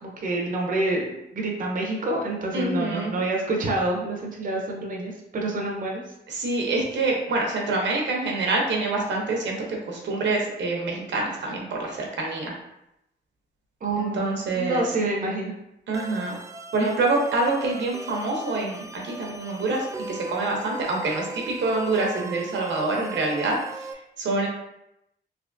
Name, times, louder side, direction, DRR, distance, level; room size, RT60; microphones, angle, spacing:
voice 1, 0.0-1.0 1.3-6.0 13.8-14.2 14.5-15.5, right 2 dB, 45° right, -1 dB, 0.7 m, -27 dB
voice 2, 2.5-3.2 6.3-12.5 13.9-14.9 15.9-16.3 16.7-23.9 24.2-24.5, right 2 dB, 80° right, -1 dB, 0.9 m, -26 dB
sound 1, 15.9-23.9, right 2 dB, 15° right, 0.4 m, -39 dB
3.4 x 2.9 x 2.6 m, 0.86 s
cardioid pair, 85°, 19 cm